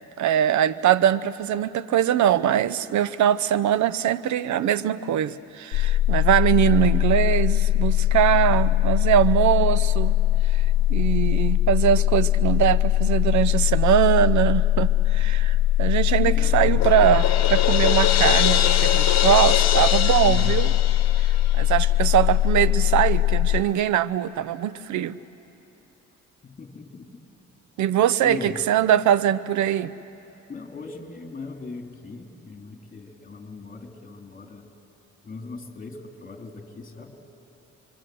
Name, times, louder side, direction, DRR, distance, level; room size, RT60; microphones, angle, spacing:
voice 1, 0.2-10.1 10.5-10.6 10.9-20.7 21.6-25.2 27.8-29.9, right 10 dB, 70° right, 17 dB, 0.7 m, -22 dB
sound 1, 5.7-23.6, left 13 dB, 80° left, 0.5 m, -21 dB
voice 2, 8.3-8.8 16.2-16.9 20.2-20.6 26.4-27.2 28.2-28.6 30.5-34.7 35.2-37.2, left 3 dB, 25° left, 3 dB, 3.0 m, -38 dB
Crash cymbal, 16.8-21.7, left 10 dB, 60° left, 1.1 m, -24 dB
25.0 x 24.5 x 7.7 m, 2.9 s
cardioid pair, 90°, 30 cm